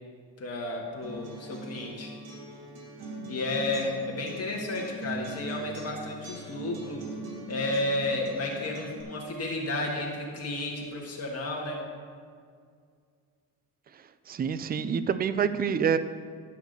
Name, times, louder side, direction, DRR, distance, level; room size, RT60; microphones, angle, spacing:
voice 1, 0.4-2.1 3.3-7.0 7.5-11.8, left 2 dB, 40° left, -2 dB, 1.6 m, -32 dB
Acoustic guitar, 1.0-9.0, right 1 dB, 80° right, 2.8 m, -41 dB
voice 2, 14.3-16.0, right 7 dB, 25° right, 13 dB, 0.4 m, -27 dB
12.0 x 4.8 x 7.9 m, 2.1 s
cardioid pair, 130°, 37 cm